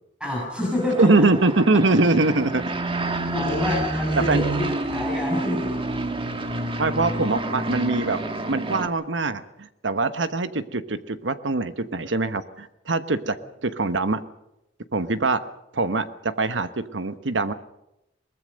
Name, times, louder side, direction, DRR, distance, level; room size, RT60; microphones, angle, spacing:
voice 1, 0.2-1.3 3.3-5.7 7.1-7.3, left 1 dB, 5° right, -2 dB, 7.0 m, -28 dB
sound 1, 0.7-8.9, right 1 dB, 30° right, 1.7 m, -28 dB
voice 2, 1.0-2.7 4.2-4.4 6.8-8.2 8.5-14.2 14.9-15.4 15.7-17.5, right 3 dB, 85° right, 11 dB, 1.2 m, -23 dB
22.0 x 20.0 x 6.5 m, 0.87 s
head